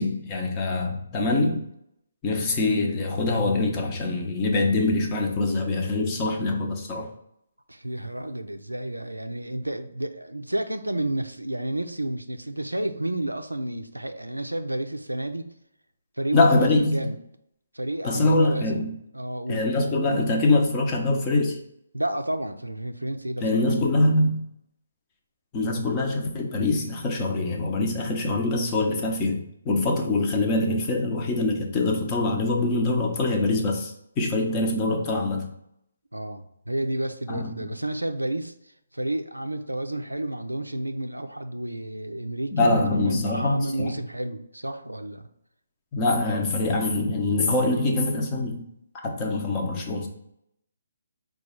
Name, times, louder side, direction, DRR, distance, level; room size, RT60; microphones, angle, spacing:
voice 1, 0.0-1.6 2.2-7.1 16.3-17.0 18.0-18.9 19.5-21.6 23.4-24.4 25.5-35.5 37.3-37.7 42.5-43.9 45.9-48.7 48.9-50.1, left 2 dB, 25° left, 0.7 m, -24 dB
voice 2, 7.7-15.5 16.2-17.1 17.7-18.8 19.1-19.6 21.9-23.6 25.7-25.8 36.1-38.5 38.9-45.3, right 1 dB, 90° right, 0.4 m, -31 dB
4.7 x 2.3 x 4.2 m
figure-of-eight pair, 140°, 0 cm